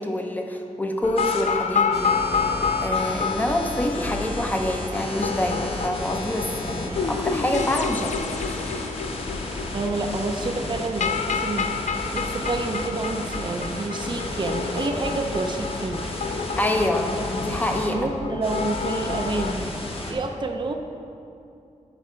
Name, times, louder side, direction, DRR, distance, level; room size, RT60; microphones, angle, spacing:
voice 1, 0.0-2.2 2.8-8.6 16.6-18.0, left 1 dB, 15° left, 3 dB, 0.7 m, -26 dB
sound 1, 1.0-19.5, left 5 dB, 65° left, 0.4 m, -29 dB
sound 2, 1.2-1.4 1.9-17.9 18.4-20.1, left 1 dB, 45° left, 1.1 m, -33 dB
voice 2, 9.7-11.7 12.1-16.0 17.9-19.8 20.1-20.7, right 3 dB, 40° right, 4 dB, 0.5 m, -28 dB
11.0 x 4.9 x 4.4 m, 2.6 s
wide cardioid pair, 100°, 13 cm